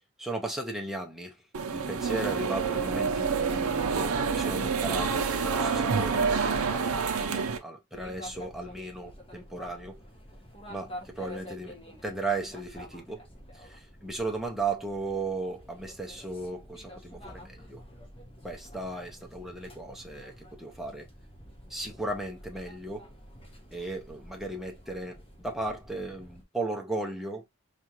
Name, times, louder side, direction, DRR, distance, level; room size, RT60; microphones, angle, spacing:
voice 1, 0.2-1.4 1.7-6.3 6.7-10.0 10.7-13.3 13.5-17.8 18.4-21.1 21.7-23.1 23.7-27.4, right 2 dB, ahead, 0.6 m, -36 dB
sound 1, 1.5-7.6, right 5 dB, 80° right, 0.6 m, -28 dB
sound 2, 7.9-26.4, equal, 25° left, 1.1 m, -48 dB
4.2 x 2.5 x 2.9 m
head